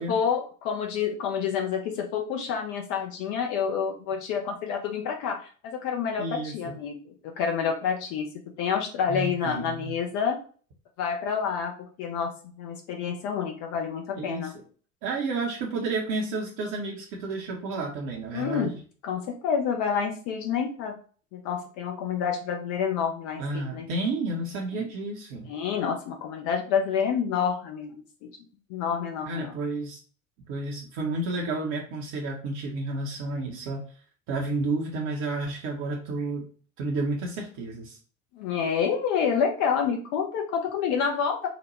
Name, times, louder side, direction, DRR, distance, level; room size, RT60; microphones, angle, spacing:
voice 1, 0.0-8.3 8.6-10.4 11.0-14.5 18.3-18.7 19.0-21.0 21.3-23.9 24.8-24.9 25.5-27.9 28.2-28.3 28.7-29.5 38.4-41.5, left 7 dB, 50° left, 3 dB, 0.7 m, -28 dB
voice 2, 6.2-6.8 9.1-9.9 14.1-14.6 15.0-18.8 23.4-25.5 29.3-30.0 30.5-33.8 34.3-36.4 36.8-38.0, right 2 dB, 50° right, -1 dB, 0.8 m, -31 dB
4.0 x 2.2 x 3.0 m, 0.41 s
figure-of-eight pair, 60°, 39 cm